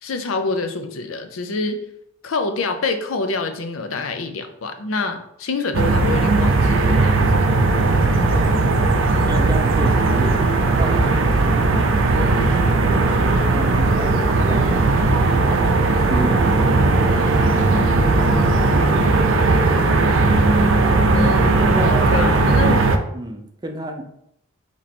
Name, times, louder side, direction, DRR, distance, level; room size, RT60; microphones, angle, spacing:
voice 1, 0.0-1.8 2.2-7.5 21.1-22.8, left 3 dB, 85° left, 7 dB, 0.6 m, -26 dB
sound 1, 5.7-23.0, right 3 dB, 75° right, 0.5 m, -17 dB
voice 2, 9.3-11.8 12.7-15.3 16.0-17.8 21.6-22.4 23.1-24.0, right 1 dB, 20° right, 4 dB, 0.5 m, -31 dB
4.2 x 3.0 x 4.2 m, 0.76 s
head